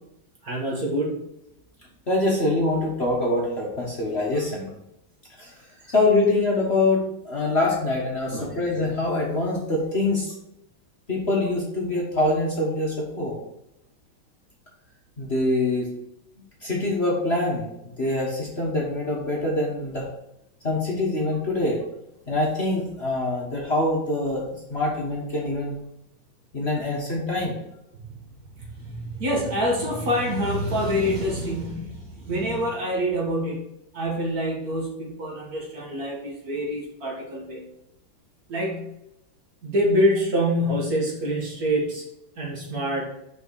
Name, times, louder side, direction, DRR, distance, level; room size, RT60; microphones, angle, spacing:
voice 1, 0.4-1.2 8.3-8.6 28.8-33.6 33.9-37.6 38.5-38.9 39.6-42.0 42.4-43.0, equal, 50° right, -2 dB, 2.1 m, -26 dB
voice 2, 2.1-4.7 5.4-5.5 5.9-10.3 11.1-13.4 15.2-15.9 16.6-20.0 20.6-21.8 22.3-24.4 24.7-25.8 26.5-27.6, left 2 dB, 35° left, -3 dB, 1.5 m, -24 dB
6.2 x 5.4 x 4.7 m, 0.84 s
omnidirectional pair, 2.2 m